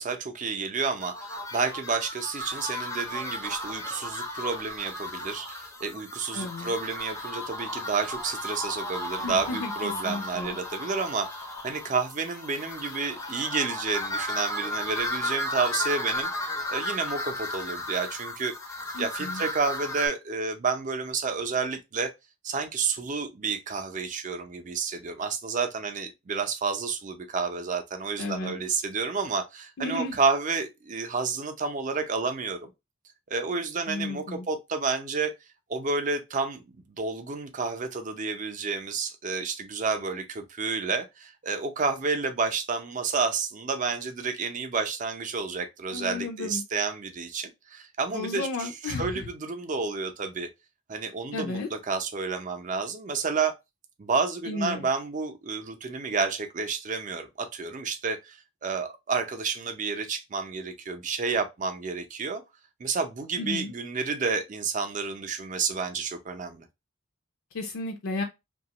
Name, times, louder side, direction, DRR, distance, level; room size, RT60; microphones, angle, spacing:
voice 1, 0.0-18.5 19.0-22.1 22.4-32.7 33.3-35.3 35.7-36.6 37.0-50.5 50.9-53.5 54.0-62.4 62.8-66.7, right 4 dB, 35° right, 0.5 m, -30 dB
sound 1, 1.0-20.1, left 1 dB, 15° left, 0.5 m, -35 dB
voice 2, 6.3-6.7 9.2-10.6 18.9-19.4 28.2-28.6 29.8-30.2 33.9-34.5 45.9-46.6 48.1-49.2 51.3-51.7 54.5-54.8 63.4-63.7 67.5-68.2, left 3 dB, 75° left, 0.5 m, -33 dB
2.8 x 2.3 x 2.8 m
head